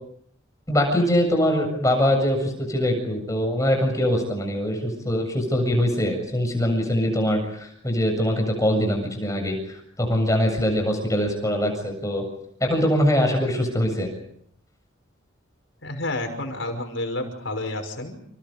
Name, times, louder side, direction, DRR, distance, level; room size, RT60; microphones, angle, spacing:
voice 1, 0.7-12.2 12.6-14.1, equal, 15° left, 3 dB, 7.5 m, -23 dB
voice 2, 15.8-18.2, left 2 dB, 65° left, 5 dB, 5.8 m, -30 dB
30.0 x 29.0 x 5.2 m, 0.69 s
head